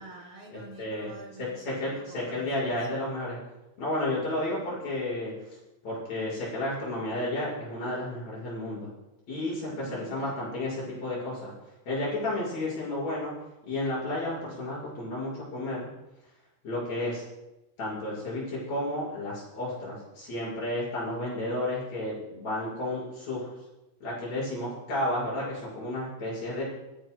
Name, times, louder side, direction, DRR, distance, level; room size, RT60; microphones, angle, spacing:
voice 1, 0.0-3.0 9.4-10.4 12.4-12.9, right 2 dB, 50° right, -3 dB, 4.5 m, -48 dB
voice 2, 0.8-1.1 1.4-3.4 3.8-5.3 5.8-8.9 9.3-11.5 11.9-13.3 13.6-15.9 16.6-17.2 17.8-23.5 24.0-26.6, left 1 dB, 65° left, -7 dB, 6.8 m, -32 dB
25.5 x 10.5 x 2.3 m, 0.99 s
omnidirectional pair, 3.4 m